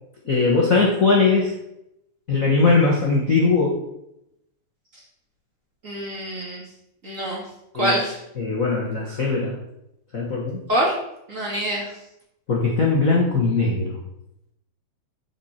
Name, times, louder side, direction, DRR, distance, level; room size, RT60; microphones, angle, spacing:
voice 1, 0.2-1.5 2.3-3.8 7.7-7.9 8.4-9.5 10.1-10.6 12.5-14.0, left 4 dB, 75° left, -3 dB, 0.7 m, -20 dB
voice 2, 5.8-6.6 7.0-7.4 7.8-8.2 10.7-10.9 11.3-11.9, right 1 dB, 30° right, -3 dB, 1.7 m, -24 dB
11.0 x 5.3 x 4.3 m, 0.82 s
omnidirectional pair, 3.5 m